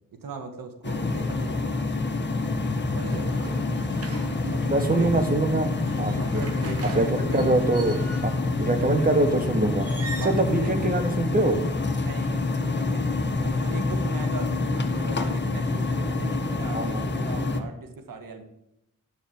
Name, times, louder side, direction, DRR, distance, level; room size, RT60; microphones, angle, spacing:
voice 1, 0.2-1.7 2.9-3.4 4.5-5.3 6.1-7.5 10.2-10.8 12.0-18.4, right 4 dB, 65° right, 6 dB, 1.9 m, -39 dB
sound 1, 0.8-17.6, left 3 dB, 30° left, 1.6 m, -27 dB
sound 2, 2.4-5.4 5.9-8.9, left 6 dB, 80° left, 1.5 m, -43 dB
sound 3, 3.1-4.8 5.6-8.5 9.7-10.4, right 2 dB, 40° right, 2.3 m, -41 dB
voice 2, 4.4-6.4 6.9-8.3 8.6-9.9 10.2-11.6 16.7-17.0, right 2 dB, 25° right, 6 dB, 2.0 m, -24 dB
10.5 x 6.6 x 7.5 m, 0.83 s
cardioid pair, 70°, 35 cm